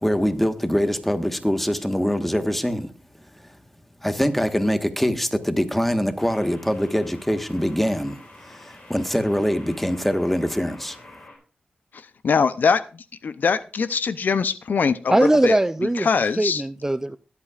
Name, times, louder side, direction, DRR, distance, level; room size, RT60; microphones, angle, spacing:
voice 1, 0.0-2.9 4.0-8.2 8.9-11.0, equal, 5° left, 1.3 m, -23 dB
sound 1, 2.2-2.5 6.2-11.4, left 2 dB, 55° left, 4.7 m, -47 dB
voice 2, 11.9-12.8 13.2-15.6 16.0-16.6, left 5 dB, 70° left, 0.6 m, -22 dB
voice 3, 15.1-16.1 16.4-17.2, right 1 dB, 15° right, 0.5 m, -20 dB
21.0 x 8.4 x 2.4 m
cardioid pair, 65°, 3 cm